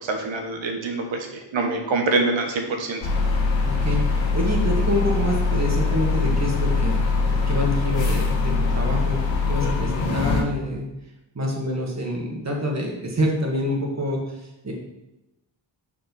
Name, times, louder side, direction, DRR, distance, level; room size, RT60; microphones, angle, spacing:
voice 1, 0.0-3.0, right 3 dB, 90° right, 3 dB, 1.1 m, -25 dB
sound 1, 3.0-10.4, left 4 dB, 80° left, 1.3 m, -22 dB
voice 2, 3.6-9.2 9.5-10.8 11.4-14.7, equal, 35° right, -1 dB, 1.8 m, -26 dB
6.0 x 5.0 x 4.1 m, 0.96 s
cardioid pair, 65°, 45 cm